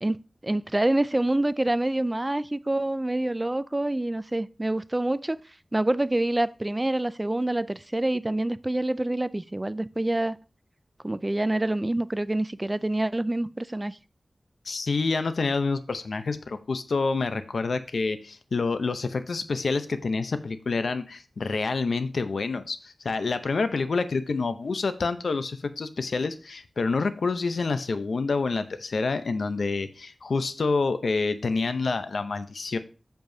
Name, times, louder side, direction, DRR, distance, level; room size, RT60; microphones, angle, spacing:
voice 1, 0.0-5.4 5.7-10.4 11.0-14.0, right 1 dB, 20° right, 0.3 m, -26 dB
voice 2, 14.6-32.8, left 4 dB, 85° left, 0.7 m, -27 dB
7.8 x 6.9 x 2.7 m
wide cardioid pair, 85°, 0 cm